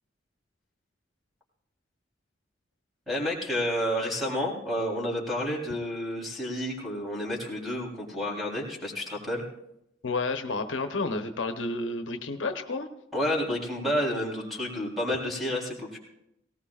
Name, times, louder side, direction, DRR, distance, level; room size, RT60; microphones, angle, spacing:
voice 1, 3.1-9.4 13.1-16.0, equal, ahead, -3 dB, 3.6 m, -30 dB
voice 2, 10.0-12.9, left 3 dB, 80° left, 7 dB, 0.9 m, -30 dB
18.5 x 18.0 x 2.5 m, 0.81 s
head